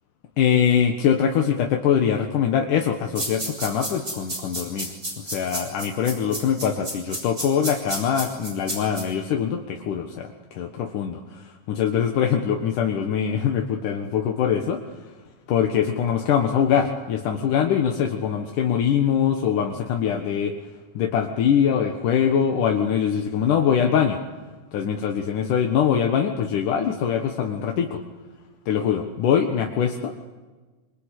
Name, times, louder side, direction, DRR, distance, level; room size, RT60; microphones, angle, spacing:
voice 1, 0.4-4.9 5.2-14.8 15.5-20.5 20.9-24.2 24.7-28.0 28.7-30.3, left 8 dB, 80° left, 3 dB, 3.0 m, -23 dB
sound 1, 3.2-9.0, right 1 dB, 20° right, 7.4 m, -31 dB
26.5 x 24.5 x 8.3 m, 1.3 s
omnidirectional pair, 3.6 m